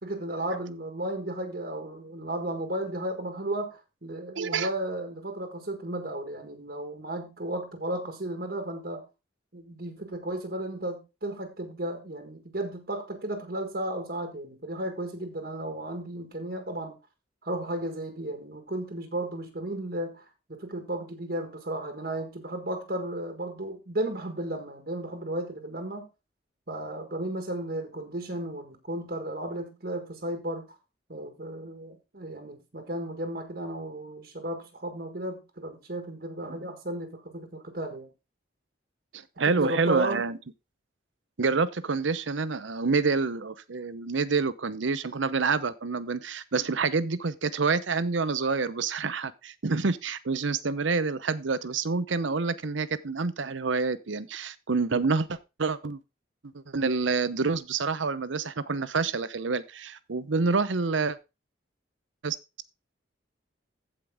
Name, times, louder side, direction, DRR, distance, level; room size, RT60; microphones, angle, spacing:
voice 1, 0.0-9.0 9.5-17.0 17.4-26.1 26.7-30.7 31.1-38.1 39.5-40.2, right 1 dB, 55° right, 1.6 m, -34 dB
voice 2, 4.4-4.7 39.1-40.4 41.4-56.0 56.7-61.2 62.2-62.4, right 4 dB, 80° right, 0.8 m, -27 dB
15.0 x 5.1 x 3.6 m
head